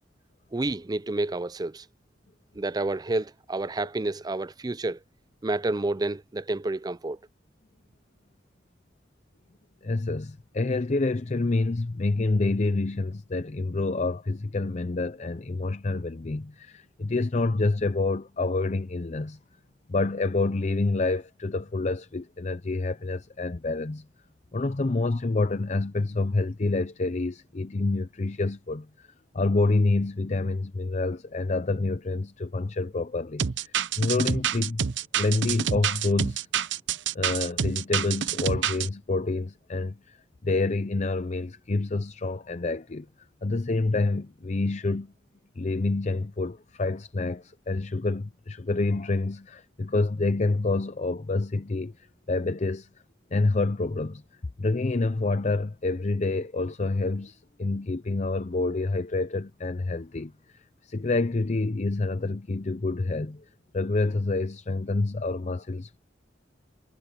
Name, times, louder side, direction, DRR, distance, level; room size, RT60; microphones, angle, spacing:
voice 1, 0.5-1.9 2.5-5.0 5.4-7.2, right 2 dB, 20° right, 0.5 m, -29 dB
voice 2, 9.8-19.4 19.9-24.0 24.5-29.1 29.3-34.8 35.2-36.5 37.1-40.2 40.4-43.1 43.4-45.1 45.6-52.9 53.3-54.2 54.6-63.4 63.7-66.0, left 3 dB, 40° left, 0.6 m, -27 dB
sound 1, 33.4-38.9, right 8 dB, 85° right, 0.7 m, -27 dB
head